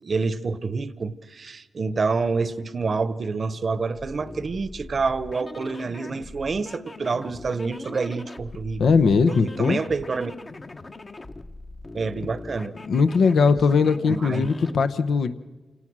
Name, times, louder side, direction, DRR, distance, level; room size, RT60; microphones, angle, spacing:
voice 1, 0.0-10.3 11.9-12.7 14.1-14.5, right 4 dB, 55° right, 16 dB, 0.9 m, -28 dB
sound 1, 3.9-14.8, left 2 dB, 40° left, 1.1 m, -41 dB
voice 2, 8.8-9.8 12.9-15.3, left 5 dB, 80° left, 10 dB, 0.9 m, -20 dB
27.5 x 18.5 x 6.2 m, 1.2 s
cardioid pair, 80°, 0 cm